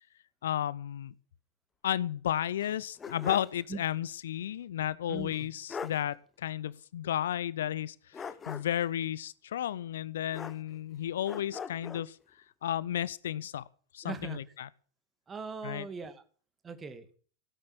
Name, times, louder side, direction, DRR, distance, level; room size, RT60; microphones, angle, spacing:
voice 1, 0.4-1.1 1.8-12.2 12.6-13.6 13.9-14.7 15.6-15.9, left 11 dB, 60° left, 20 dB, 0.7 m, -33 dB
sound 1, 2.6-3.6 3.9-4.0 5.3-5.4 5.7-6.0 8.1-8.9 10.3-10.9 11.3-12.1, left 6 dB, 20° left, 1.1 m, -41 dB
voice 2, 5.1-5.5 14.0-14.4 15.3-16.2 16.6-17.1, right 4 dB, 20° right, 10 dB, 2.4 m, -40 dB
17.0 x 9.7 x 7.1 m, 0.43 s
figure-of-eight pair, 90°, 0 cm